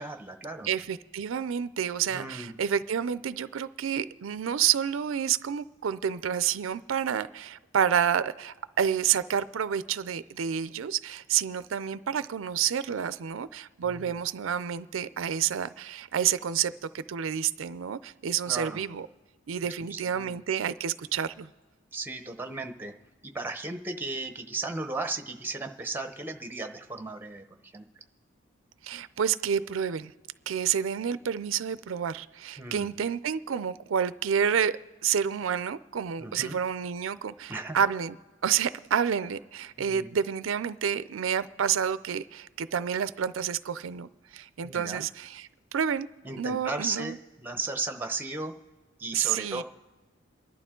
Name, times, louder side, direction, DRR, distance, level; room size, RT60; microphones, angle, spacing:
voice 1, 0.0-0.7 2.1-2.6 13.8-14.2 18.5-18.9 19.6-20.4 21.9-22.9 23.2-27.9 32.6-32.9 36.2-36.6 37.5-37.8 39.8-40.1 44.6-45.0 46.2-48.5 49.0-49.6, right 3 dB, 10° right, 7 dB, 0.8 m, -36 dB
voice 2, 0.7-19.1 19.5-21.5 28.8-30.1 30.5-38.1 38.4-46.1 46.4-47.2 49.1-49.6, right 8 dB, 85° right, 14 dB, 0.4 m, -29 dB
28.5 x 11.5 x 3.7 m, 1.3 s
head